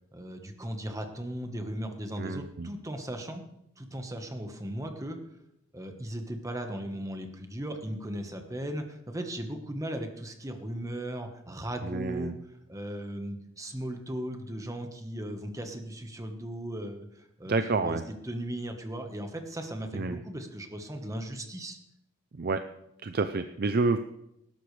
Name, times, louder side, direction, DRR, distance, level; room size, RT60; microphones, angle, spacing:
voice 1, 0.1-3.4 3.8-5.2 5.7-12.3 12.7-18.0 18.2-21.8, right 1 dB, 15° right, 5 dB, 1.2 m, -37 dB
voice 2, 2.2-2.7 11.8-12.4 17.5-18.0 19.9-20.2 22.3-22.6 23.0-24.0, right 3 dB, 50° right, 9 dB, 0.5 m, -29 dB
19.5 x 12.0 x 3.3 m, 0.81 s
head